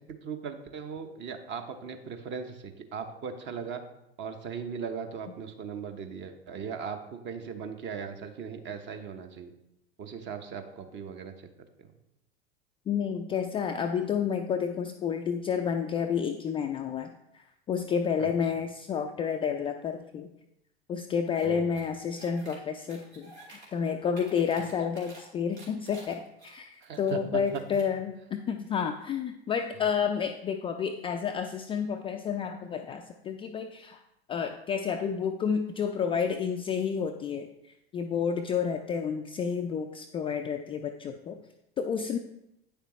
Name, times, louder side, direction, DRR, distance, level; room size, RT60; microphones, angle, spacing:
voice 1, 0.2-3.8 4.2-9.5 10.0-11.3 11.8-11.9 18.2-18.3 21.4-21.6 26.8-27.6, right 6 dB, 35° right, 7 dB, 0.9 m, -38 dB
voice 2, 12.9-20.3 20.9-34.0 34.3-37.5 37.9-41.4 41.8-42.2, left 7 dB, 15° left, 4 dB, 0.3 m, -30 dB
sound 1, 21.3-21.5 21.7-22.6 22.9-23.7 24.0-25.2 25.5-27.1 27.4-27.9, right 2 dB, 80° right, 2.6 m, -51 dB
8.7 x 6.7 x 3.1 m, 0.84 s
figure-of-eight pair, 85°, 32 cm